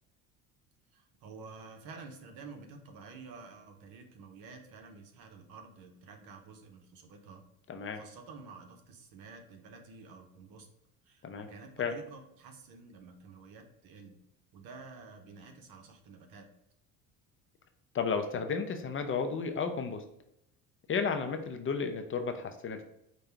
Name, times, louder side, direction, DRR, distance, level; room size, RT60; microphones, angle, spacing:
voice 1, 0.9-7.5 7.9-10.7 11.0-14.2 14.5-16.5, right 4 dB, 65° right, 5 dB, 1.0 m, -50 dB
voice 2, 7.7-8.0 11.2-11.5 11.8-11.9 17.9-20.0 20.9-22.9, left 5 dB, 35° left, 6 dB, 0.5 m, -33 dB
5.2 x 2.3 x 4.3 m, 0.80 s
supercardioid pair, 95°, 38 cm